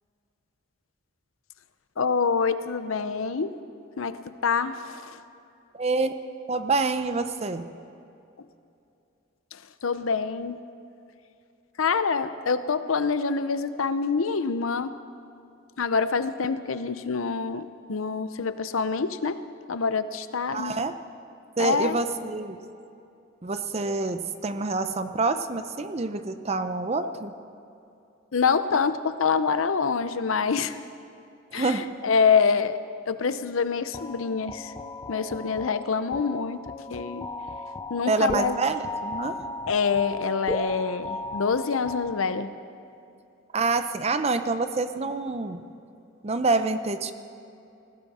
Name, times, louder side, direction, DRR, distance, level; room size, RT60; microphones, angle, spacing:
voice 1, 2.0-3.5 4.0-5.2 9.8-10.6 11.8-14.9 15.8-19.4 19.7-20.7 21.6-22.0 27.0-27.1 28.3-30.8 31.5-32.8 33.1-34.7 35.1-36.6 36.9-37.3 37.9-38.6 39.7-42.5, left 5 dB, 75° left, 12 dB, 0.7 m, -26 dB
voice 2, 5.7-6.1 6.5-7.7 20.5-20.9 21.6-22.6 23.4-27.3 31.5-31.9 38.0-39.4 43.5-45.6 46.2-47.1, right 3 dB, 30° right, 10 dB, 0.6 m, -27 dB
sound 1, 33.9-42.7, left 2 dB, 20° left, 0.4 m, -36 dB
19.5 x 16.0 x 4.2 m, 2.7 s
head